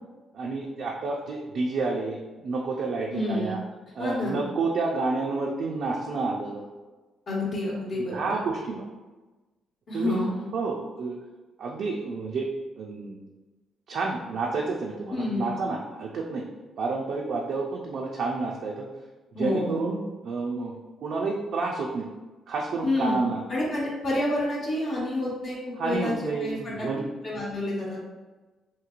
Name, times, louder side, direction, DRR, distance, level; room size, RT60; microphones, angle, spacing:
voice 1, 0.3-3.6 3.9-6.7 7.8-8.8 9.9-10.2 10.5-11.2 11.6-12.5 12.8-13.3 13.9-16.4 16.8-18.9 19.4-20.0 20.2-20.7 21.0-22.1 22.5-23.4 25.8-27.1, right 3 dB, 65° right, -1 dB, 0.4 m, -30 dB
voice 2, 3.1-3.6 4.0-4.4 7.3-8.1 9.9-10.5 15.1-15.5 19.3-19.9 22.8-23.2 23.5-25.6 25.8-26.9 27.2-28.1, left 1 dB, 60° left, -7 dB, 1.0 m, -28 dB
3.0 x 2.8 x 2.4 m, 1.2 s
cardioid pair, 90°, 0 cm